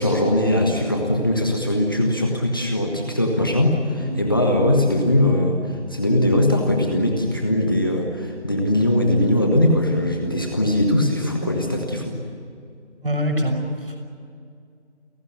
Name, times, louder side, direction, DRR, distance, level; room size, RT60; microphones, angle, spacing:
voice 1, 0.0-12.2, left 1 dB, 20° left, 2 dB, 1.5 m, -20 dB
voice 2, 13.0-14.0, equal, 50° right, 5 dB, 6.2 m, -24 dB
29.5 x 18.0 x 10.0 m, 2.4 s
figure-of-eight pair, 170°, 35 cm